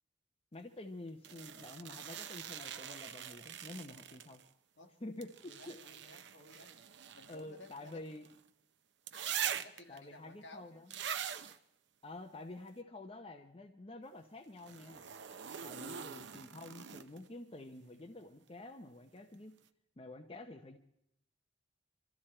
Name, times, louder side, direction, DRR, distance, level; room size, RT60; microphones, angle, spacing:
voice 1, 0.5-4.4 5.0-5.8 7.3-8.3 9.9-11.0 12.0-15.1 15.6-19.6 20.0-20.8, left 2 dB, 30° left, 5 dB, 0.7 m, -49 dB
sound 1, 1.2-4.5 5.2-8.4 9.1-10.0 10.9-11.6 14.6-17.3 19.2-19.3, right 8 dB, 60° right, 0.7 m, -43 dB
voice 2, 5.5-6.7 7.1-8.1 9.3-10.9 15.7-16.1, left 2 dB, 65° left, 4 dB, 1.8 m, -56 dB
24.5 x 13.5 x 4.4 m, 0.79 s
head